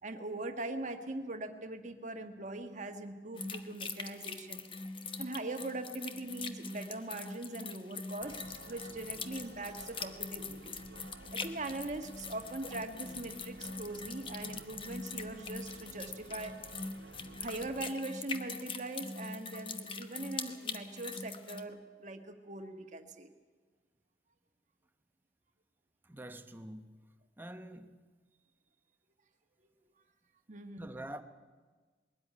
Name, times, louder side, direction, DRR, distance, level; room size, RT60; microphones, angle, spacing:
voice 1, 0.0-4.6 5.2-10.8 11.3-16.5 17.4-23.3 29.6-29.7 30.5-30.9, right 2 dB, 45° right, 1.4 m, -41 dB
sound 1, 3.3-21.6, left 4 dB, 30° left, 1.0 m, -43 dB
sound 2, 8.2-17.9, right 3 dB, 70° right, 0.8 m, -54 dB
voice 2, 26.0-27.0 27.4-28.0 30.8-31.2, right 1 dB, 10° right, 0.9 m, -46 dB
20.5 x 13.5 x 10.0 m
head